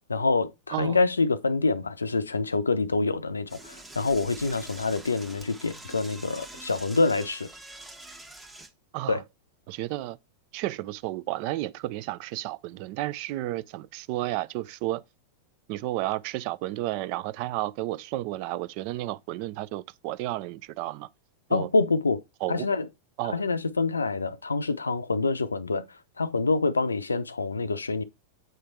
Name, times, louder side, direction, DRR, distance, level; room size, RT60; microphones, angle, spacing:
voice 1, 0.1-7.5 9.1-9.2 21.5-22.2 22.5-22.9 23.3-25.8 26.2-28.0, left 3 dB, 85° left, 0.5 m, -26 dB
Door / Toilet flush, 3.5-8.7, right 2 dB, 10° right, 1.0 m, -45 dB
voice 2, 9.7-10.2 10.5-15.0 15.7-21.1 21.5-21.7 22.4-22.7 23.2-23.4, right 16 dB, 50° right, 0.4 m, -32 dB
7.8 x 3.3 x 4.4 m
figure-of-eight pair, 95°, 0 cm